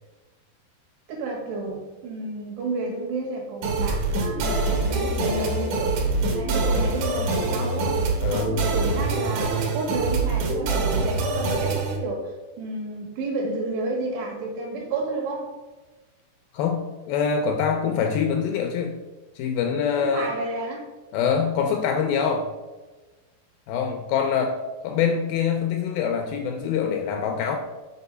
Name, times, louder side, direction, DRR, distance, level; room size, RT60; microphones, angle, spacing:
voice 1, 1.1-15.6 20.0-20.9, right 2 dB, 80° right, -1 dB, 3.6 m, -31 dB
sound 1, 3.6-12.0, right 3 dB, 65° right, 2.3 m, -24 dB
voice 2, 8.2-8.6 16.5-19.0 19.4-20.3 21.1-22.5 23.7-27.6, left 6 dB, 80° left, 4 dB, 2.1 m, -24 dB
7.0 x 4.2 x 5.4 m, 1.2 s
omnidirectional pair, 4.7 m